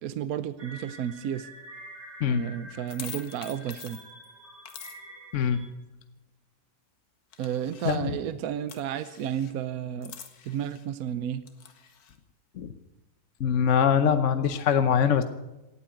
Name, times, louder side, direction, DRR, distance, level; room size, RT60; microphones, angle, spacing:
voice 1, 0.0-1.5 2.2-4.0 7.4-10.1 10.5-11.4, right 9 dB, 75° right, 13 dB, 1.2 m, -32 dB
sound 1, 0.6-5.7, right 1 dB, 45° right, 2.9 m, -47 dB
sound 2, 2.9-4.3 4.7-5.0 7.3-8.1 8.7-9.5 10.0-10.9 11.5-12.2, left 7 dB, 80° left, 1.8 m, -45 dB
voice 2, 13.4-15.2, left 7 dB, 60° left, 10 dB, 1.1 m, -23 dB
17.5 x 8.6 x 9.1 m, 1.0 s
omnidirectional pair, 1.6 m